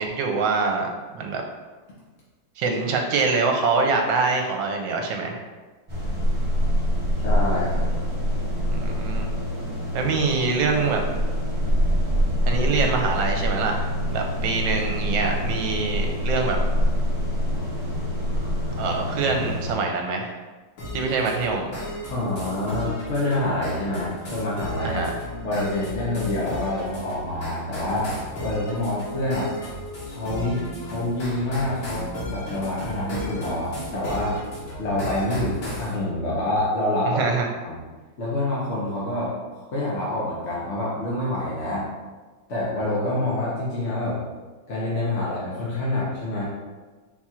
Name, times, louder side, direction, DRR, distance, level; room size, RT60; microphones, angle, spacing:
voice 1, 0.0-1.4 2.6-5.4 8.7-9.3 9.9-11.0 12.5-16.6 18.8-20.3 20.9-21.8 24.8-25.1 37.1-37.5, right 4 dB, 80° right, 2 dB, 1.3 m, -24 dB
sound 1, 5.9-19.7, equal, 35° right, 0.4 m, -25 dB
voice 2, 7.2-7.8 22.1-25.0 25.4-28.1 28.4-29.5 30.1-34.4 34.8-37.2 37.6-37.8 38.2-39.3 39.7-41.9 42.5-44.2 44.7-46.4, left 1 dB, 55° left, -6 dB, 0.8 m, -27 dB
sound 2, 20.8-35.9, left 1 dB, 85° left, 2.0 m, -34 dB
4.4 x 2.4 x 4.2 m, 1.3 s
omnidirectional pair, 2.1 m